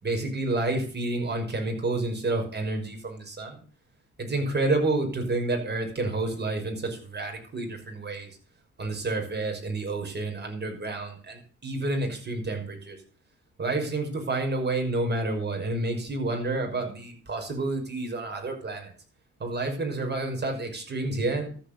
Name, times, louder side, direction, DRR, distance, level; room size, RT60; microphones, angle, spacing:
voice 1, 0.0-3.6 4.2-8.4 8.8-13.0 13.6-18.9 19.4-21.5, right 2 dB, 35° right, 3 dB, 5.8 m, -29 dB
13.0 x 8.2 x 6.8 m, 0.41 s
cardioid pair, 90°, 30 cm